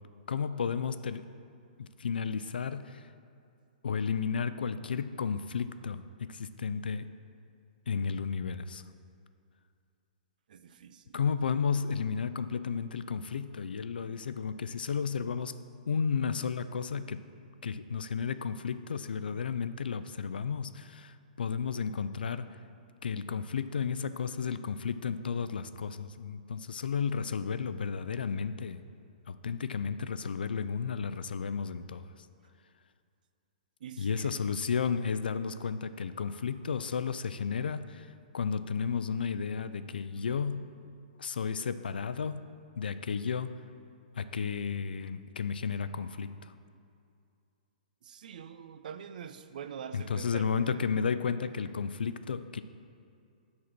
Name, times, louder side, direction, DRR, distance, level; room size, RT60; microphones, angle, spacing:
voice 1, 0.3-1.2 1.8-3.1 3.8-7.1 7.9-8.8 11.1-15.6 15.9-17.2 17.6-22.6 23.0-28.8 29.3-32.1 34.0-40.7 41.2-42.4 42.8-43.5 44.2-46.5 49.9-52.6, left 6 dB, 90° left, 12 dB, 0.5 m, -33 dB
voice 2, 10.5-11.2 33.8-34.4 40.2-40.5 48.0-50.8, right 7 dB, 60° right, 10 dB, 0.6 m, -45 dB
11.5 x 4.2 x 6.0 m, 2.4 s
hypercardioid pair, 150°, 5 cm